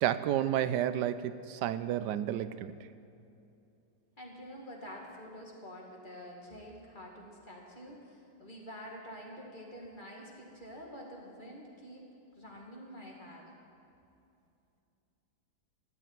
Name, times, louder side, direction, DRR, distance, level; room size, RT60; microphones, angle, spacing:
voice 1, 0.0-2.7, right 11 dB, 85° right, 13 dB, 1.2 m, -31 dB
voice 2, 4.2-12.0 12.4-13.5, equal, 30° left, -1 dB, 2.2 m, -47 dB
14.0 x 8.4 x 9.3 m, 2.7 s
omnidirectional pair, 1.8 m